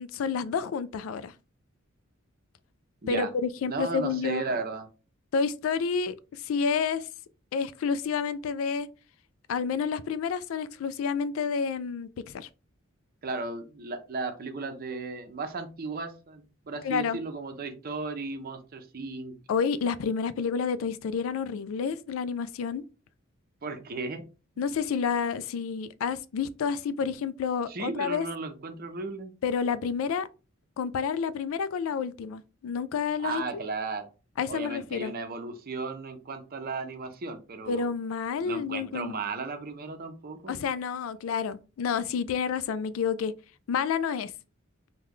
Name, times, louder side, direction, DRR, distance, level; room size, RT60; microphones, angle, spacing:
voice 1, 0.0-1.3 3.1-4.4 5.3-7.1 7.5-8.9 9.5-12.5 16.8-17.2 19.5-22.9 24.6-28.3 29.4-30.3 30.8-33.4 34.4-35.1 37.7-39.1 40.5-43.3 43.7-44.3, left 6 dB, 75° left, 0.3 m, -29 dB
voice 2, 3.7-4.9 13.2-19.3 23.6-24.2 27.0-27.1 27.7-29.3 33.2-34.1 34.5-37.8 38.4-40.6, right 3 dB, 45° right, 0.6 m, -35 dB
3.1 x 2.2 x 3.7 m
head